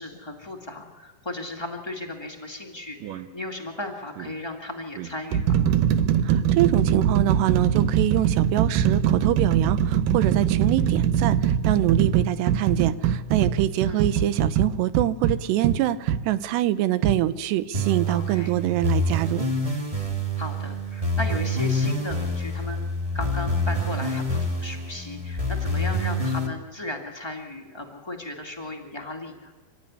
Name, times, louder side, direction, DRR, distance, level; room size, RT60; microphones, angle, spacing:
voice 1, 0.0-5.6 13.8-14.0 18.1-18.5 20.4-22.8 23.1-29.5, left 1 dB, 20° left, 1 dB, 0.6 m, -35 dB
sound 1, 3.0-3.3 4.2-4.3 5.0-16.3 17.0-17.2, right 9 dB, 70° right, 2.1 m, -22 dB
voice 2, 6.2-19.5, right 14 dB, 90° right, 14 dB, 3.1 m, -25 dB
sound 2, 17.7-26.5, equal, 15° right, 1.4 m, -27 dB
26.5 x 15.5 x 9.8 m, 1.3 s
omnidirectional pair, 4.7 m